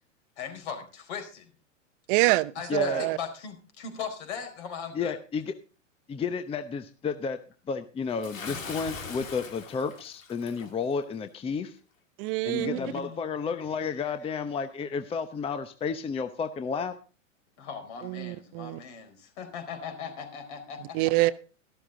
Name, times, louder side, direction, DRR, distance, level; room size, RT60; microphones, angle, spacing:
voice 1, 0.4-1.5 2.5-5.1 12.5-13.2 13.5-13.7 14.0-14.1 17.6-21.1, left 6 dB, 60° left, 4.7 m, -39 dB
voice 2, 2.1-3.2 12.2-12.8 18.0-18.8 20.9-21.3, right 20 dB, 45° right, 0.8 m, -26 dB
voice 3, 2.7-3.0 4.9-5.5 6.1-7.4 7.7-11.8 12.4-17.0, left 5 dB, 15° left, 0.8 m, -31 dB
Bathtub (filling or washing) / Splash splatter, 8.2-10.7, left 5 dB, 85° left, 2.8 m, -41 dB
13.0 x 12.5 x 3.8 m
hypercardioid pair, 110°, 38 cm